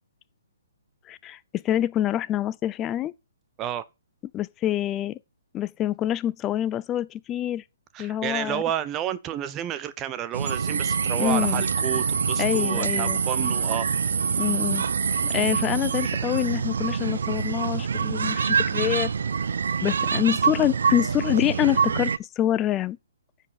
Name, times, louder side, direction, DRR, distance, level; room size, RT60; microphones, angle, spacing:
voice 1, 1.1-1.4 1.6-3.1 4.3-5.2 5.5-7.6 8.0-8.6 11.2-11.6 12.4-13.2 14.4-14.9 15.3-19.1 19.8-23.0, left 12 dB, 20° left, 0.4 m, -26 dB
voice 2, 7.9-13.9, right 11 dB, 20° right, 0.7 m, -30 dB
sound 1, 10.3-22.2, right 6 dB, 75° right, 0.5 m, -25 dB
9.9 x 5.3 x 5.6 m
hypercardioid pair, 150°, 0 cm